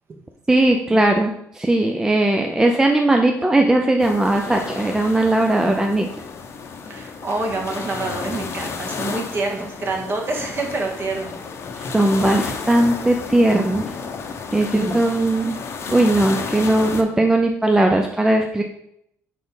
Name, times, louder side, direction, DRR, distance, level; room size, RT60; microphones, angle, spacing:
voice 1, 0.5-6.1 11.8-13.9 14.5-15.6 15.9-18.6, right 1 dB, 10° right, 3 dB, 0.4 m, -18 dB
sound 1, 4.0-17.0, left 5 dB, 45° left, 0.7 m, -32 dB
voice 2, 6.8-11.4, right 3 dB, 40° right, 2 dB, 1.4 m, -27 dB
4.7 x 4.2 x 5.5 m, 0.74 s
cardioid pair, 130°, 6 cm